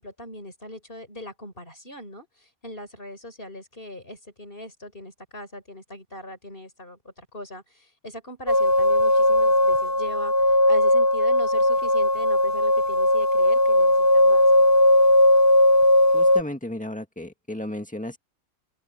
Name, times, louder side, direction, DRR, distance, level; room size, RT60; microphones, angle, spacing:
voice 1, 0.0-14.4, left 1 dB, 45° left, 5.1 m, -41 dB
sound 1, 8.5-16.4, left 1 dB, 15° right, 0.8 m, -18 dB
voice 2, 16.1-18.2, left 1 dB, 5° left, 1.9 m, -34 dB
omnidirectional pair, 1.3 m